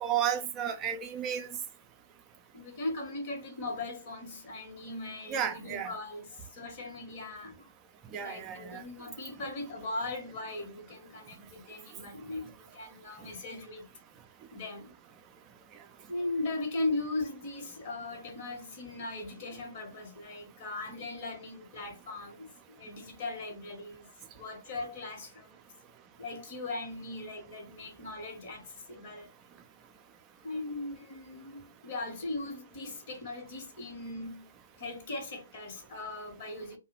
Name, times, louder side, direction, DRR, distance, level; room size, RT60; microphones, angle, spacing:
voice 1, 0.0-1.5 5.3-5.9 8.1-8.8, right 9 dB, 20° right, 0.4 m, -32 dB
voice 2, 2.5-7.7 8.2-13.9 14.5-14.9 16.1-24.1 24.3-25.6 26.2-29.3 30.4-34.5 34.8-36.8, left 2 dB, 40° left, 1.1 m, -39 dB
2.3 x 2.1 x 3.0 m
figure-of-eight pair, 125°, 0 cm